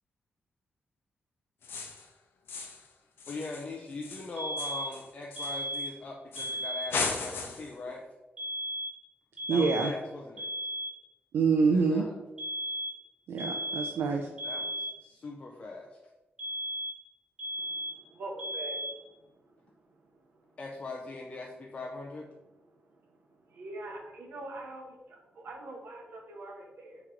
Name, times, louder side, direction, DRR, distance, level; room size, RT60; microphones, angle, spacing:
sound 1, 1.6-2.1 2.5-2.9 3.2-5.9 6.3-6.6 6.9-7.8, left 4 dB, 75° left, 0.6 m, -36 dB
voice 1, 3.3-8.0 9.5-10.5 11.7-12.2 14.4-16.0 20.6-22.3, left 3 dB, 35° left, 0 dB, 0.4 m, -41 dB
sound 2, 4.4-5.0 5.4-6.0 6.4-7.0 8.4-9.0 9.4-10.0 10.4-11.0 12.4-13.0 13.4-14.0 14.4-15.0 16.4-17.1 17.4-18.1 18.4-19.1, equal, 25° right, 0.8 m, -36 dB
voice 2, 9.5-9.9 11.3-12.0 13.3-14.3, right 4 dB, 90° right, 3 dB, 0.4 m, -26 dB
voice 3, 17.6-19.0 23.5-27.0, right 2 dB, 70° right, 2 dB, 0.8 m, -43 dB
4.5 x 2.9 x 3.7 m, 1.1 s
wide cardioid pair, 165°, 4 cm